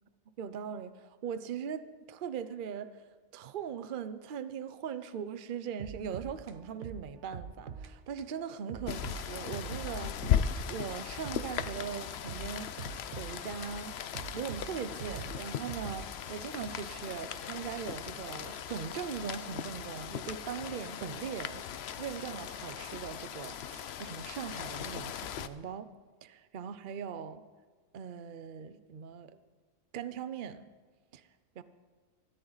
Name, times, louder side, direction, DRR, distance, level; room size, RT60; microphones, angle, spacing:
voice 1, 0.4-1.8 2.1-2.9 3.3-10.4 10.7-12.9 13.2-13.9 14.3-21.6 22.0-25.9 26.2-27.4 27.9-29.3 29.9-30.7 31.1-31.3 31.6-31.7, right 7 dB, 45° right, 13 dB, 0.8 m, -40 dB
sound 1, 5.8-8.3 8.7-10.6 10.9-13.8 14.1-16.7, right 7 dB, 65° right, 1.3 m, -45 dB
Rain, 8.9-25.5, left 9 dB, 60° left, 0.8 m, -37 dB
25.0 x 14.0 x 4.0 m, 1.5 s
omnidirectional pair, 1.4 m